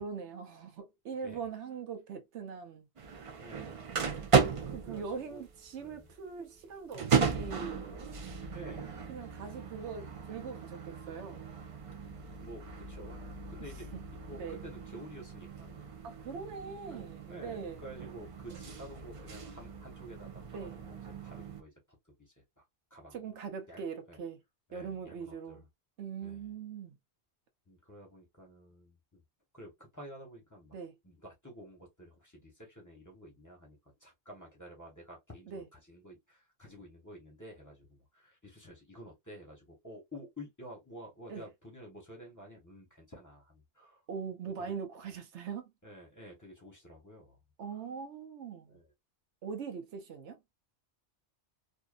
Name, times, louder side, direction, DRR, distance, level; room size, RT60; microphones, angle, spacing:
voice 1, 0.0-2.9 4.7-7.8 9.1-11.4 14.3-14.6 16.0-17.8 20.5-20.8 23.1-24.4 24.7-25.7 26.0-27.0 30.7-30.9 35.5-35.7 41.3-41.5 44.1-45.7 47.6-48.8 49.4-50.4, right 6 dB, 85° right, 1.0 m, -41 dB
sound 1, 3.0-21.6, right 5 dB, 60° right, 0.3 m, -36 dB
voice 2, 3.4-3.9 4.8-5.4 5.8-6.1 8.5-9.0 12.4-13.2 13.5-13.9 14.3-16.0 16.9-22.6 22.9-23.2 23.7-23.8 24.1-24.2 24.7-25.7 26.2-26.5 27.7-29.2 29.5-30.7 31.0-44.0 44.6-44.7 45.8-47.4 48.7-48.9, equal, 15° left, 1.0 m, -51 dB
2.6 x 2.5 x 2.3 m
omnidirectional pair, 1.2 m